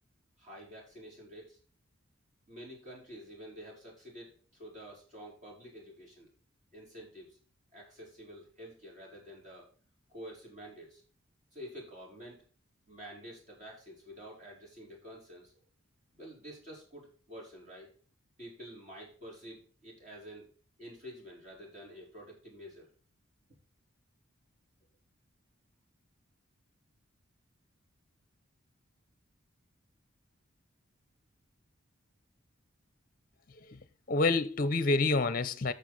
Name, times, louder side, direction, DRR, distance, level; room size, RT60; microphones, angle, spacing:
voice 1, 0.4-1.6 2.5-6.3 6.7-7.4 7.7-9.7 10.1-11.0 11.5-12.4 12.9-15.6 16.1-17.9 18.4-22.9, equal, 35° right, 4.5 m, -49 dB
voice 2, 33.5-35.7, left 3 dB, 40° left, 0.6 m, -28 dB
9.4 x 6.6 x 4.1 m
head